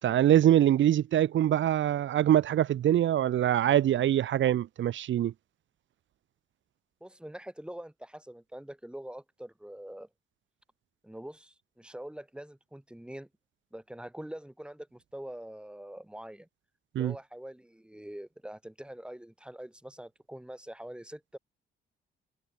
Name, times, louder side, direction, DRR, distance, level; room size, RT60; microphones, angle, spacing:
voice 1, 0.0-5.3 17.0-17.1, right 11 dB, 70° right, 3.7 m, -24 dB
voice 2, 7.0-10.1 11.0-13.3 13.7-16.5 16.9-21.4, right 1 dB, 5° right, 8.0 m, -44 dB
cardioid pair, 90°, 20 cm